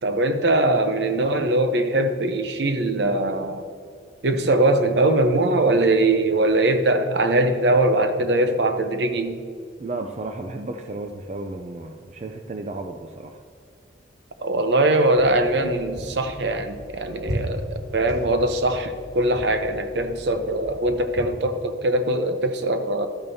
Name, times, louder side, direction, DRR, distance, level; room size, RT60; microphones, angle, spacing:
voice 1, 0.0-3.6 4.2-9.4 14.4-23.1, right 2 dB, 65° right, 8 dB, 0.7 m, -21 dB
voice 2, 9.8-13.3, right 2 dB, 35° right, 5 dB, 0.4 m, -33 dB
sound 1, 15.1-21.2, equal, 5° right, 2.2 m, -36 dB
12.5 x 8.8 x 2.7 m, 2.3 s
head